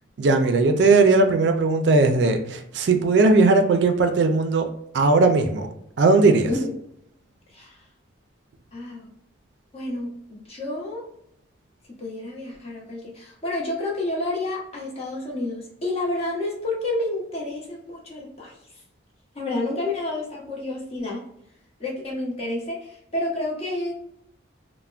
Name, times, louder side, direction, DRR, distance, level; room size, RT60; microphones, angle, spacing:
voice 1, 0.2-4.7 4.9-5.7 6.0-6.5, right 3 dB, 65° right, 6 dB, 0.4 m, -18 dB
voice 2, 8.7-9.1 9.7-11.0 11.9-18.6 19.3-21.2 21.8-23.9, left 2 dB, 30° left, -3 dB, 0.8 m, -29 dB
3.3 x 2.1 x 2.4 m, 0.75 s
head